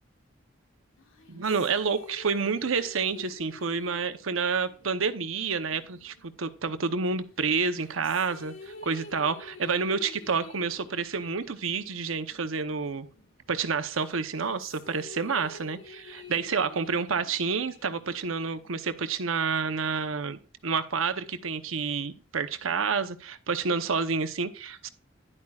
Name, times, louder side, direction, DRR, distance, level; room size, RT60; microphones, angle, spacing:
sound 1, 1.0-6.9 7.5-13.5 13.9-19.0, left 3 dB, 85° left, 1.7 m, -49 dB
voice 1, 1.3-13.1 13.5-24.9, right 5 dB, 90° right, 0.8 m, -29 dB
11.0 x 8.7 x 2.4 m
head